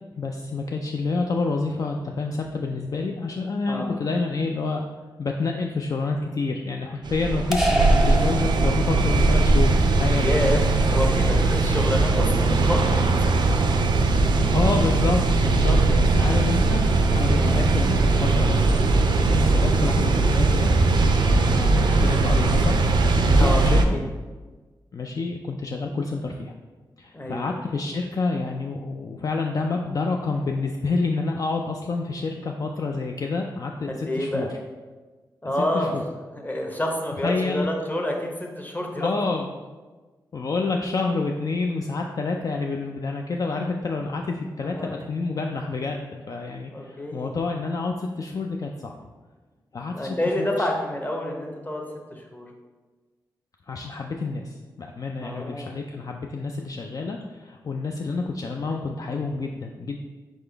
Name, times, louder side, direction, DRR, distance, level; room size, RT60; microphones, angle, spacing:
voice 1, 0.2-4.8 5.2-10.4 11.2-11.4 14.5-20.7 21.1-24.0 24.9-26.5 27.0-34.5 35.4-36.0 37.2-37.7 39.0-39.5 40.3-48.9 49.7-50.7 53.7-60.0, left 3 dB, 45° left, 2 dB, 0.3 m, -28 dB
sound 1, 7.0-23.8, right 3 dB, 70° right, 0.4 m, -20 dB
sound 2, 7.5-9.2, right 1 dB, 5° right, 0.7 m, -26 dB
voice 2, 10.2-13.6 17.4-17.7 19.8-20.1 23.4-24.0 27.1-27.5 33.9-34.5 35.4-35.9 36.3-39.1 44.6-45.0 46.7-47.3 49.9-51.8 52.1-52.5 55.2-55.7, left 1 dB, 20° left, 1 dB, 0.9 m, -28 dB
4.0 x 3.6 x 3.4 m, 1.3 s
cardioid pair, 50°, 8 cm